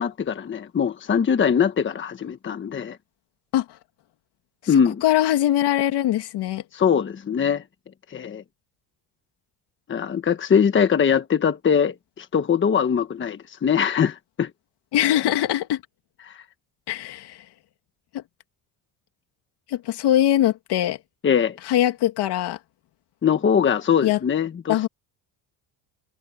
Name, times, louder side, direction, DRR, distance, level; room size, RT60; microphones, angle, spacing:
voice 1, 0.0-3.0 4.7-5.0 6.7-7.6 8.1-8.4 9.9-14.5 16.2-16.3 21.2-21.6 23.2-24.9, left 7 dB, 25° left, 1.3 m, -22 dB
voice 2, 5.0-6.6 14.9-15.8 16.9-17.4 18.1-18.2 19.7-21.0 21.7-22.6 24.0-24.2 24.7-24.9, left 12 dB, 65° left, 2.3 m, -22 dB
cardioid pair, 140°, 44 cm